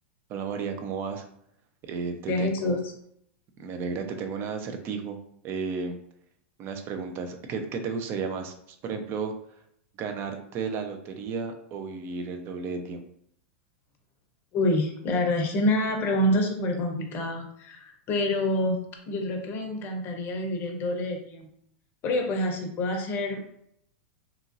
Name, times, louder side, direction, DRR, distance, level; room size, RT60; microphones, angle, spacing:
voice 1, 0.3-1.2 1.8-2.8 3.6-5.2 5.4-6.0 6.6-9.3 10.0-13.1, right 5 dB, 35° right, 6 dB, 0.4 m, -33 dB
voice 2, 2.3-2.9 14.5-18.8 19.1-21.5 22.0-23.4, left 1 dB, 35° left, 3 dB, 0.6 m, -27 dB
2.9 x 2.4 x 2.5 m, 0.71 s
supercardioid pair, 135°, 7 cm